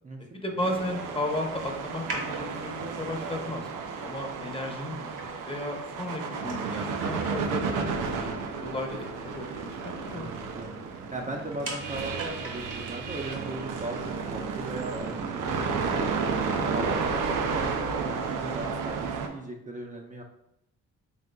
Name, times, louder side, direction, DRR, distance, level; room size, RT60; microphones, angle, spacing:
voice 1, 0.3-3.7 4.0-10.3, left 1 dB, 15° left, 2 dB, 0.8 m, -35 dB
sound 1, 0.6-19.3, right 5 dB, 90° right, 0.5 m, -32 dB
sound 2, 1.8-13.4, right 2 dB, 70° right, 1.3 m, -44 dB
voice 2, 10.1-16.2 16.7-20.2, right 2 dB, 25° right, 0 dB, 0.5 m, -38 dB
5.1 x 3.5 x 2.3 m, 0.84 s
cardioid pair, 75°, 31 cm